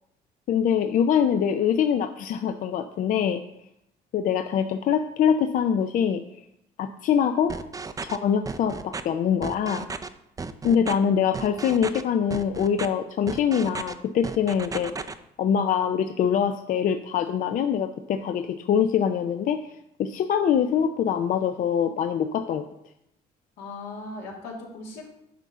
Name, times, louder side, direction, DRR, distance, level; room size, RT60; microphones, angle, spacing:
voice 1, 0.5-3.4 4.1-6.2 6.8-7.5 8.0-9.8 10.6-14.9 15.4-19.6 20.0-22.6, left 8 dB, 50° left, 8 dB, 0.5 m, -24 dB
sound 1, 7.5-8.2 8.5-9.0 9.4-10.1 10.4-10.9 11.3-12.0 12.3-12.9 13.3-13.9 14.2-15.1, right 4 dB, 20° right, 0.5 m, -34 dB
voice 2, 23.6-25.1, left 2 dB, 80° left, -2 dB, 2.5 m, -38 dB
9.4 x 5.6 x 3.6 m, 0.80 s
cardioid pair, 110°, 17 cm